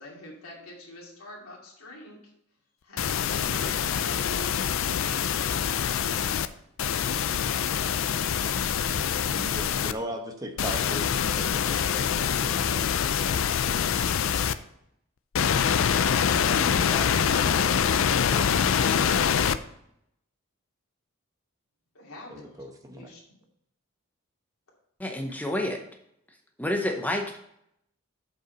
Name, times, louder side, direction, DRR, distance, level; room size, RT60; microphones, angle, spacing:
voice 1, 0.0-2.3 2.8-4.6 21.9-22.5 22.9-23.2, left 1 dB, 85° left, -3 dB, 2.4 m, -45 dB
sound 1, 3.0-6.5 6.8-9.9 10.6-14.5 15.3-19.6, left 8 dB, 65° left, 0.4 m, -25 dB
voice 2, 9.3-13.4 16.5-19.4 22.3-23.1, equal, 15° right, 4 dB, 1.0 m, -40 dB
voice 3, 25.0-25.8 26.6-27.4, left 1 dB, 10° left, 3 dB, 0.7 m, -29 dB
7.5 x 5.5 x 5.2 m, 0.76 s
head